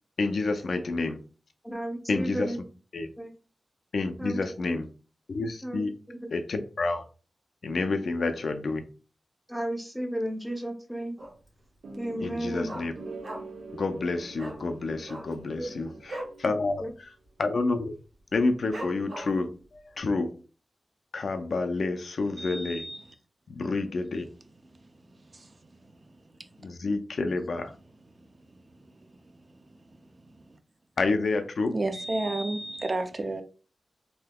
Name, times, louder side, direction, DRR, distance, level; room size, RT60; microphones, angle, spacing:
voice 1, 0.2-1.2 2.1-2.5 2.9-3.1 3.9-4.9 5.3-5.9 6.3-7.0 7.6-8.8 12.2-12.9 13.7-16.8 17.4-17.9 18.3-19.5 20.0-20.4 21.1-22.8 23.5-24.3 26.6-27.7 31.0-31.8, left 3 dB, 70° left, 0.4 m, -29 dB
voice 2, 1.6-2.6 3.2-3.3 4.2-4.4 5.6-5.8 6.1-6.2 9.5-11.2 12.0-12.7 15.6-15.8 16.8-16.9, right 1 dB, ahead, 0.6 m, -33 dB
Dog, 11.2-11.6 11.9-12.0 12.3-13.7 14.0-14.1 14.3-14.6 15.0-16.4 16.8-16.9 17.2-17.6 18.0-18.1 18.7-19.5 20.0-20.1, right 1 dB, 60° right, 1.1 m, -39 dB
sound 1, 11.8-16.9, right 3 dB, 90° right, 0.6 m, -45 dB
voice 3, 22.4-23.0 25.3-25.5 31.7-33.4, right 2 dB, 40° right, 0.4 m, -31 dB
3.5 x 2.7 x 2.2 m
wide cardioid pair, 110°, 0 cm